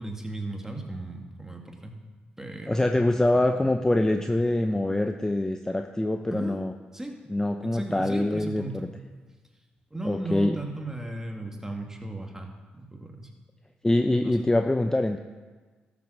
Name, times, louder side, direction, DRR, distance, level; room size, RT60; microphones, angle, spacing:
voice 1, 0.0-2.0 2.4-3.1 3.4-3.7 6.3-6.6 6.9-7.2 7.6-8.9 9.9-13.3 14.2-14.4, right 2 dB, 10° right, 2 dB, 2.1 m, -36 dB
voice 2, 2.7-6.7 7.3-8.9 10.0-10.6 13.8-15.2, left 1 dB, 15° left, 6 dB, 0.7 m, -24 dB
13.5 x 6.3 x 6.3 m, 1.4 s
supercardioid pair, 55°, 4 cm